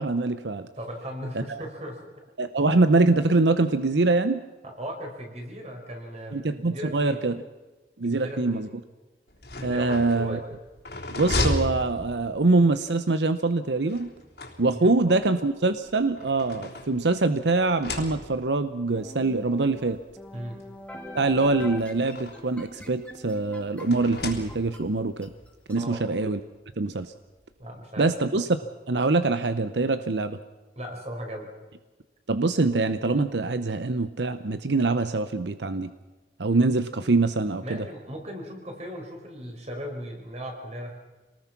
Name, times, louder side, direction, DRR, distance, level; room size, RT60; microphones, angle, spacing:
voice 1, 0.0-0.7 1.5-1.6 2.4-4.4 6.3-7.4 8.0-8.7 9.6-10.4 11.1-14.1 14.6-20.0 21.1-25.3 25.7-26.4 26.8-27.1 28.0-28.5 28.9-30.4 32.3-35.9 36.4-37.8, right 3 dB, 80° right, 11 dB, 0.8 m, -24 dB
voice 2, 0.8-2.0 4.6-7.2 8.0-8.6 9.6-10.4 14.7-15.1 20.3-20.6 25.7-26.1 27.6-28.4 30.7-31.5 37.6-40.9, equal, 40° right, 2 dB, 5.0 m, -37 dB
sound 1, 9.3-12.6 13.9-15.1 15.9-17.3 17.7-18.6 19.5-19.6 20.0-20.1 21.2-22.6 23.8-25.0, left 2 dB, 65° left, 3.5 m, -34 dB
sound 2, 19.0-25.8, left 1 dB, 5° left, 2.0 m, -44 dB
26.5 x 19.5 x 6.0 m, 1.2 s
head